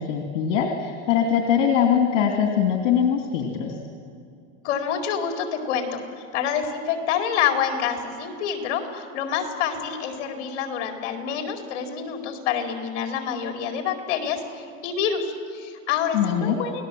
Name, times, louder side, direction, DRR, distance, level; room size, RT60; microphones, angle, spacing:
voice 1, 0.0-3.7 16.1-16.6, left 8 dB, 80° left, 3 dB, 2.6 m, -22 dB
voice 2, 4.6-6.0 6.3-16.9, left 7 dB, 65° left, 4 dB, 4.1 m, -27 dB
29.0 x 18.5 x 7.6 m, 2.4 s
supercardioid pair, 180°, 36 cm